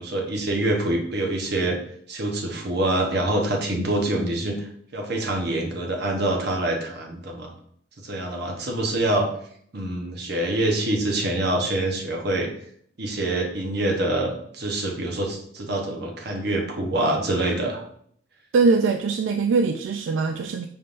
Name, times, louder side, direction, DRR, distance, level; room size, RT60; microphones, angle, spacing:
voice 1, 0.0-1.8 2.1-7.5 8.0-9.3 9.7-12.5 13.0-17.8, right 1 dB, 60° right, 2 dB, 0.9 m, -25 dB
voice 2, 18.5-20.7, right 4 dB, 85° right, 5 dB, 0.3 m, -21 dB
5.4 x 3.6 x 2.5 m, 0.64 s
head